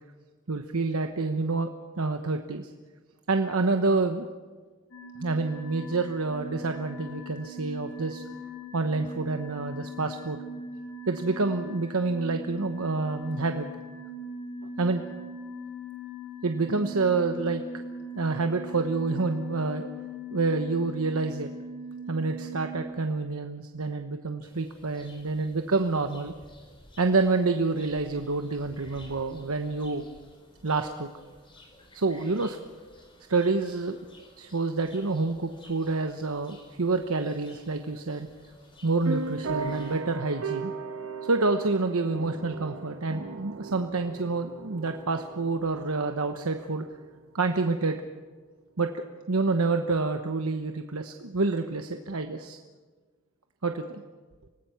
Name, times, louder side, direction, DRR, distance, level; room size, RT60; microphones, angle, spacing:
voice 1, 0.5-1.7 2.0-2.7 3.3-4.3 5.2-8.2 8.7-10.4 11.1-13.7 14.8-15.0 16.4-17.6 18.2-19.9 20.3-21.5 22.1-26.3 27.0-30.0 30.6-31.1 31.9-32.6 33.3-34.0 34.4-38.3 38.8-40.7 41.2-46.8 47.3-48.0 48.8-52.6 53.6-54.0, right 3 dB, 85° right, 6 dB, 1.0 m, -28 dB
sound 1, 4.9-22.8, equal, 55° left, 3.5 m, -40 dB
sound 2, 24.4-40.0, left 1 dB, 25° left, 3.8 m, -53 dB
sound 3, 39.1-47.2, right 4 dB, 70° right, 1.3 m, -37 dB
26.0 x 18.5 x 5.8 m, 1.4 s
head